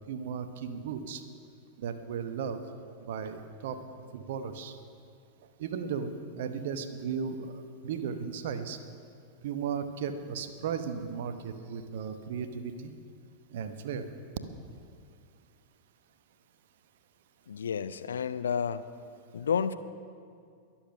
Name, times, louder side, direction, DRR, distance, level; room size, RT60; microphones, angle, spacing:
voice 1, 0.1-1.2 1.8-2.6 3.1-3.8 4.1-4.7 5.6-7.5 7.8-8.8 9.4-12.9 13.5-14.0, right 6 dB, 55° right, 9 dB, 0.9 m, -35 dB
voice 2, 17.5-18.8 19.3-19.7, left 7 dB, 65° left, 14 dB, 0.5 m, -30 dB
21.5 x 7.3 x 5.7 m, 2.3 s
figure-of-eight pair, 90°, 0 cm